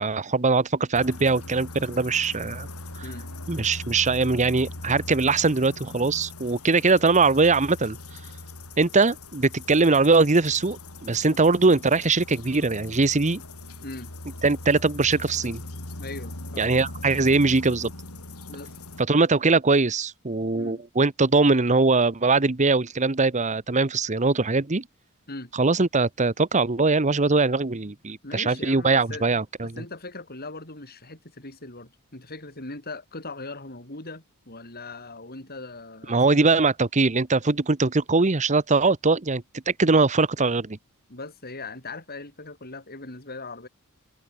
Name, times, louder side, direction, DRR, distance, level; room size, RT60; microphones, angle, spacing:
voice 1, 0.0-2.7 3.5-8.0 8.8-13.4 14.4-15.6 16.6-17.9 19.1-24.8 25.6-29.7 36.1-40.8, right 3 dB, 35° right, 1.0 m, -21 dB
sound 1, 0.9-19.0, left 2 dB, 90° left, 5.0 m, -40 dB
voice 2, 16.0-16.8 18.5-18.8 20.5-20.8 25.3-25.5 28.2-29.2 29.6-36.5 41.1-43.7, left 2 dB, 45° left, 7.9 m, -40 dB
head